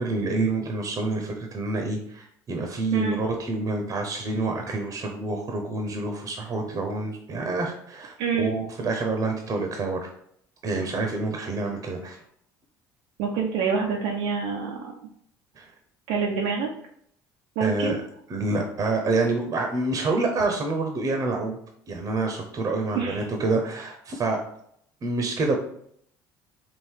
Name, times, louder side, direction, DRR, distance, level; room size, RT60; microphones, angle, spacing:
voice 1, 0.0-10.1 10.6-12.2 15.6-15.7 17.6-18.0 18.3-21.6 21.9-24.4 25.0-25.5, right 3 dB, 40° right, 3 dB, 0.8 m, -27 dB
voice 2, 8.2-8.5 13.2-14.9 16.1-16.7 17.6-18.0 22.9-23.2, right 6 dB, 85° right, -2 dB, 0.7 m, -26 dB
3.8 x 2.5 x 4.6 m, 0.67 s
supercardioid pair, 90°, 9 cm